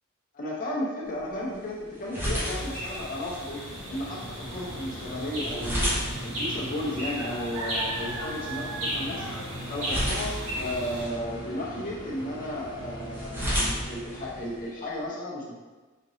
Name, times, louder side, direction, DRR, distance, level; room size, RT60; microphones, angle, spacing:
voice 1, 0.3-3.6 3.9-5.9 6.2-9.3 9.6-15.6, left 1 dB, 40° left, -4 dB, 0.7 m, -34 dB
sound 1, 1.0-15.0, equal, 10° right, 0.7 m, -35 dB
sound 2, 2.4-11.0, right 1 dB, 65° right, 1.2 m, -35 dB
sound 3, 3.3-14.7, equal, 20° left, 1.1 m, -41 dB
5.1 x 2.9 x 2.7 m, 1.2 s
head